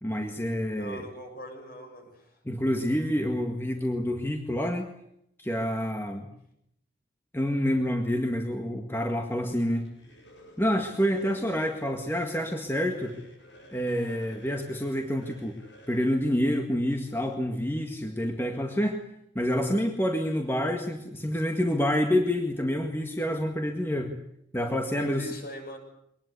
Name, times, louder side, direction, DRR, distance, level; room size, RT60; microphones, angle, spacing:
voice 1, 0.0-1.0 2.5-4.9 5.4-6.3 7.3-9.9 10.6-13.2 13.7-15.6 15.9-19.0 19.4-24.1 24.5-25.3, equal, 15° left, 3 dB, 1.9 m, -28 dB
voice 2, 0.7-2.4 25.0-25.8, equal, 50° left, 4 dB, 7.0 m, -41 dB
sound 1, 9.7-17.4, left 1 dB, 75° left, 7.4 m, -53 dB
23.5 x 20.0 x 8.4 m, 0.76 s
head